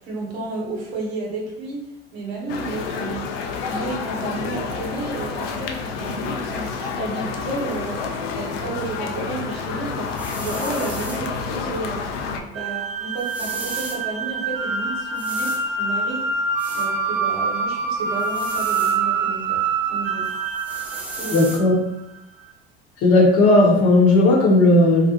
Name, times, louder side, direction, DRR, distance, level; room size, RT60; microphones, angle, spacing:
voice 1, 0.0-3.3 3.6-8.0 8.3-12.1 12.5-16.3 16.7-19.6 19.9-20.3 21.1-21.4, right 3 dB, 75° right, -2 dB, 0.9 m, -32 dB
sound 1, 2.5-12.4, left 5 dB, 70° left, 0.5 m, -29 dB
sound 2, 10.0-11.3 13.2-14.0 15.1-15.6 16.6-16.9 18.2-19.0 20.2-21.6, right 1 dB, 5° right, 0.4 m, -36 dB
sound 3, 12.5-21.7, right 4 dB, 50° right, 0.6 m, -25 dB
voice 2, 21.3-21.7 23.0-25.1, left 2 dB, 50° left, -1 dB, 0.8 m, -15 dB
2.5 x 2.1 x 2.8 m, 0.84 s
hypercardioid pair, 70°, 31 cm